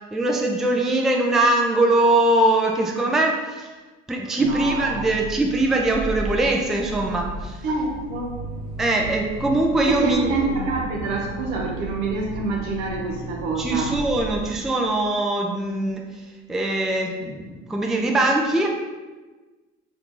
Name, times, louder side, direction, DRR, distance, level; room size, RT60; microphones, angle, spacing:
voice 1, 0.1-3.7 4.1-7.6 8.8-10.7 13.6-16.1 16.5-18.7, right 2 dB, ahead, 1 dB, 0.3 m, -22 dB
sound 1, 4.4-14.5, right 2 dB, 55° right, 1.1 m, -35 dB
voice 2, 4.4-5.1 7.6-8.4 9.8-14.0, right 3 dB, 75° right, 0 dB, 0.8 m, -26 dB
2.8 x 2.5 x 3.6 m, 1.3 s
supercardioid pair, 80°, 29 cm